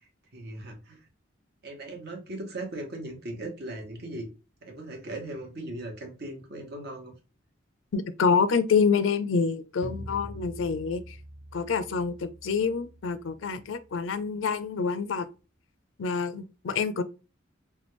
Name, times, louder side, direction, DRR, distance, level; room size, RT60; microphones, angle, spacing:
voice 1, 0.3-1.1 1.6-4.3 4.6-7.1, right 1 dB, 55° right, 1.0 m, -38 dB
voice 2, 7.9-11.1 11.5-15.3 16.0-17.0, left 5 dB, 75° left, 0.4 m, -27 dB
sound 1, 9.8-14.8, equal, 5° right, 0.3 m, -45 dB
3.3 x 2.2 x 3.1 m
head